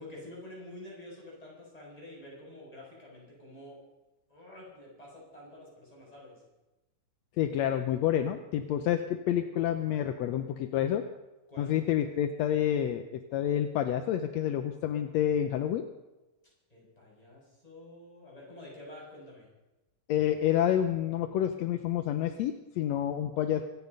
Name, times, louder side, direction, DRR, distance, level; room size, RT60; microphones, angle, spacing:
voice 1, 0.0-3.8 4.3-6.4 11.5-11.7 16.7-19.5, left 1 dB, 10° left, -5 dB, 6.6 m, -48 dB
voice 2, 7.4-11.0 11.6-15.9 20.1-23.6, left 10 dB, 75° left, 8 dB, 1.7 m, -28 dB
25.0 x 9.2 x 5.4 m, 1.1 s
omnidirectional pair, 3.8 m